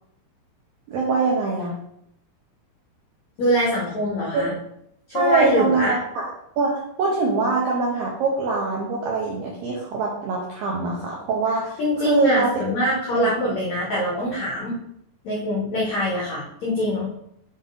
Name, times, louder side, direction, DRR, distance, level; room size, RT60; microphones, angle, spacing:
voice 1, 0.9-1.8 4.3-4.5 5.1-6.3 6.6-11.8 12.1-13.3, right 3 dB, 85° right, -3 dB, 2.0 m, -23 dB
voice 2, 3.4-4.5 5.1-6.0 11.8-14.7 15.2-17.1, equal, 80° left, -4 dB, 1.5 m, -24 dB
7.5 x 4.1 x 3.9 m, 0.76 s
omnidirectional pair, 5.4 m